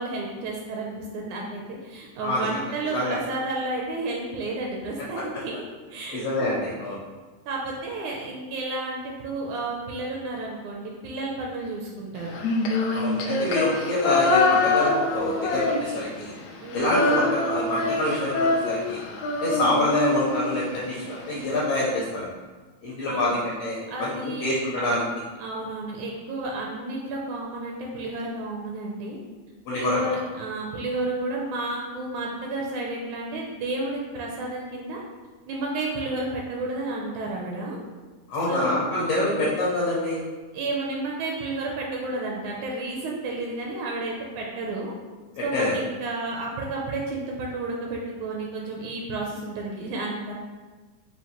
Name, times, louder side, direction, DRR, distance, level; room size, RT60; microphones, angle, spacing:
voice 1, 0.0-5.7 5.9-6.5 7.5-12.4 16.6-17.1 19.5-19.8 23.1-23.4 23.9-24.5 25.4-29.2 29.7-35.0 35.5-37.8 38.5-38.8 39.2-39.4 40.5-44.9 45.4-50.3, right 2 dB, 80° right, -2 dB, 1.8 m, -31 dB
voice 2, 6.1-7.0 12.9-16.3 16.7-19.0 19.4-22.3 22.8-24.1 24.4-25.0 29.7-30.0 38.3-40.2 45.4-45.7, left 1 dB, 70° left, -6 dB, 1.6 m, -26 dB
Female singing, 12.3-16.2 16.5-20.8, left 2 dB, 85° left, 1.5 m, -24 dB
5.7 x 2.4 x 2.9 m, 1.3 s
omnidirectional pair, 3.5 m